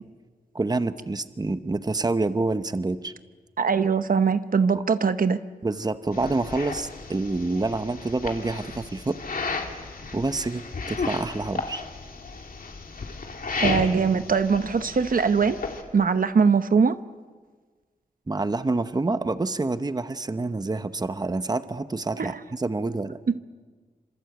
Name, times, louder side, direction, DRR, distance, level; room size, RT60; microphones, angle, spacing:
voice 1, 0.5-3.1 4.7-4.8 5.6-9.2 10.1-11.8 18.3-23.2, right 3 dB, 25° right, 11 dB, 0.9 m, -27 dB
voice 2, 3.6-5.4 13.6-15.6 15.9-16.9 22.2-22.3 23.3-23.4, right 5 dB, 65° right, 11 dB, 0.9 m, -21 dB
sound 1, 6.1-15.8, left 4 dB, 70° left, 2.7 m, -34 dB
27.0 x 26.5 x 8.1 m, 1.5 s
wide cardioid pair, 125°, 15 cm